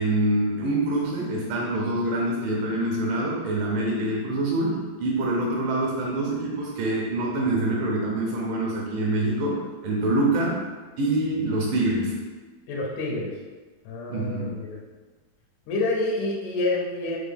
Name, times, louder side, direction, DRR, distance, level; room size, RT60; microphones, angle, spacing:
voice 1, 0.0-10.6 11.0-12.1 14.1-14.5, right 1 dB, 80° right, -3 dB, 2.2 m, -25 dB
voice 2, 12.7-13.4 13.8-14.8 15.7-17.2, left 2 dB, 80° left, -2 dB, 1.7 m, -28 dB
5.8 x 2.1 x 3.4 m, 1.3 s
omnidirectional pair, 4.1 m